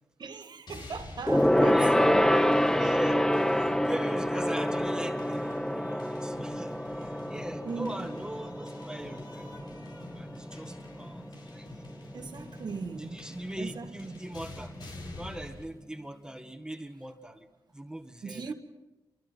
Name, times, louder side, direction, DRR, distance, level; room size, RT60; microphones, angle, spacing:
voice 1, 0.2-2.4 7.6-8.1 12.1-13.3 13.6-14.2 18.2-18.5, right 5 dB, 70° right, 1.7 m, -39 dB
sound 1, 0.7-15.6, left 1 dB, 75° left, 4.3 m, -46 dB
Gong, 1.3-11.0 11.3-11.6 11.9-12.0, equal, 5° left, 0.7 m, -27 dB
voice 2, 1.7-2.0 2.7-9.9 10.1-11.7 13.0-14.7 15.2-17.5 17.7-18.5, right 1 dB, 10° right, 1.5 m, -41 dB
28.0 x 24.0 x 4.5 m
wide cardioid pair, 90°, 8 cm